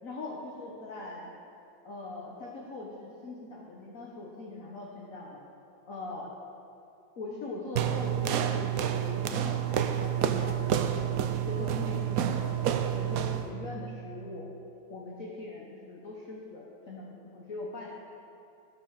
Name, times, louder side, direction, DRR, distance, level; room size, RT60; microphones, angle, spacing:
voice 1, 0.0-1.3 1.8-5.4 5.9-6.3 7.2-11.0 11.5-12.6 12.9-14.5 14.9-17.9, left 2 dB, 45° left, -3 dB, 1.5 m, -41 dB
sound 1, 7.8-13.6, right 9 dB, 85° right, 0.7 m, -29 dB
14.5 x 6.2 x 6.5 m, 2.7 s
omnidirectional pair, 2.2 m